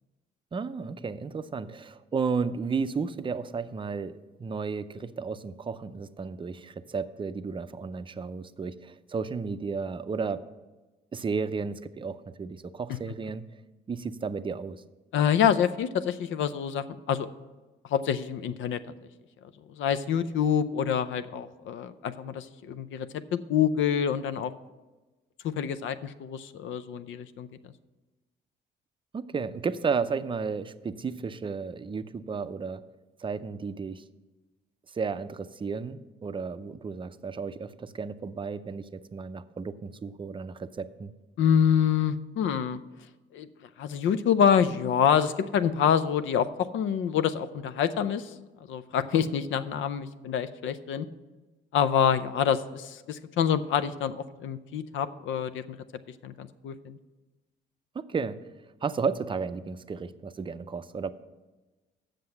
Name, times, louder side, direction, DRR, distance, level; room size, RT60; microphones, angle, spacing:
voice 1, 0.5-10.4 11.1-13.4 13.9-14.8 29.1-32.8 33.2-34.0 34.9-41.1 57.9-58.4 58.8-61.1, right 5 dB, 25° right, 12 dB, 0.5 m, -33 dB
voice 2, 15.1-17.3 17.9-18.8 19.7-24.5 25.4-27.5 41.4-42.8 43.3-43.5 43.8-48.3 48.7-51.1 51.7-55.8 56.2-57.0, left 8 dB, 75° left, 13 dB, 0.6 m, -26 dB
7.7 x 6.6 x 7.1 m, 1.2 s
cardioid pair, 90°, 20 cm